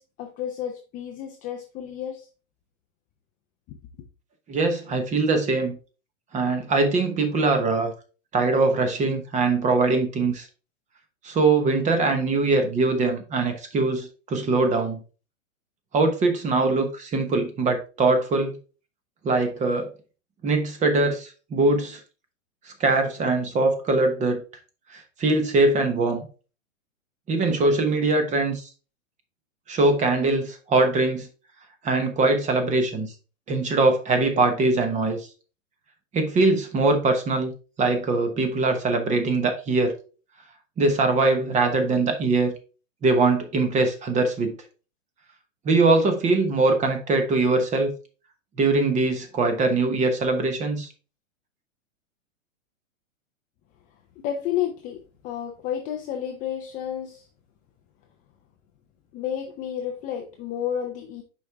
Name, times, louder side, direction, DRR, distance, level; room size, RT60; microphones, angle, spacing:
voice 1, 0.0-2.3 3.7-3.8 54.2-57.3 59.1-61.2, left 9 dB, 20° left, 3 dB, 0.5 m, -31 dB
voice 2, 4.5-5.8 6.3-7.9 8.3-10.5 11.2-15.0 15.9-18.6 19.2-19.9 20.4-22.0 22.8-24.4 24.9-26.2 27.3-28.7 29.7-31.3 31.8-33.1 33.5-35.2 36.1-37.5 37.8-39.9 40.8-42.5 43.0-44.5 45.6-47.9 48.6-50.9, right 3 dB, 20° right, 6 dB, 1.0 m, -22 dB
6.2 x 4.7 x 3.4 m, 0.35 s
hypercardioid pair, 135°, 40 cm